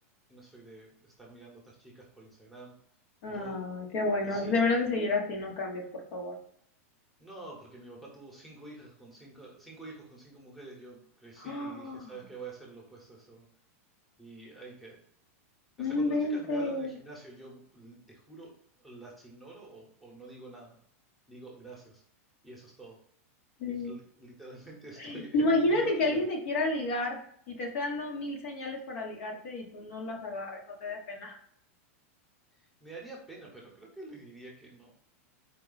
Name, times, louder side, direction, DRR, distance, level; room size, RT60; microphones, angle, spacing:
voice 1, 0.3-2.7 3.3-3.6 4.2-4.6 7.2-13.5 14.2-15.0 15.8-18.5 18.8-20.8 21.3-22.0 22.4-23.0 23.7-26.2 32.6-34.9, right 2 dB, ahead, -4 dB, 1.0 m, -48 dB
voice 2, 3.2-6.4 11.4-12.2 15.8-16.9 23.6-23.9 25.0-27.2 27.5-31.4, left 2 dB, 60° left, 1 dB, 1.1 m, -30 dB
4.5 x 2.2 x 3.9 m, 0.68 s
supercardioid pair, 160°, 8 cm